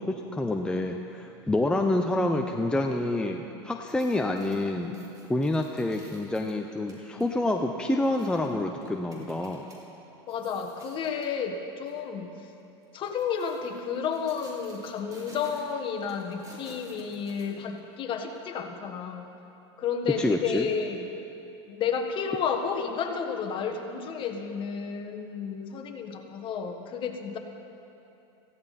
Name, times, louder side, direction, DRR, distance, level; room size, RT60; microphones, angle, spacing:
voice 1, 0.0-4.9 5.3-9.7 20.2-20.7, left 1 dB, 5° left, 3 dB, 0.7 m, -27 dB
sound 1, 3.7-9.8 10.2-11.4 11.8-12.0 12.8-18.0 18.3-18.4, right 1 dB, 25° right, 3.1 m, -53 dB
voice 2, 10.3-12.3 12.9-19.2 19.8-21.1 21.7-27.4, left 6 dB, 35° left, 4 dB, 1.5 m, -31 dB
16.5 x 15.0 x 4.2 m, 2.8 s
supercardioid pair, 115°, 14 cm